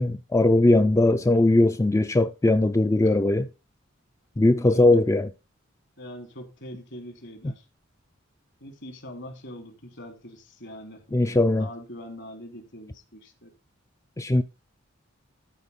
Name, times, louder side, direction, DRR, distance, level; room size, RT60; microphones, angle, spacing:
voice 1, 0.0-3.5 4.4-5.3 11.1-11.7 14.2-14.4, left 2 dB, 15° left, 0.4 m, -20 dB
voice 2, 4.6-5.0 6.0-7.6 8.6-13.5, equal, 65° left, 3.1 m, -42 dB
13.0 x 4.6 x 5.5 m
head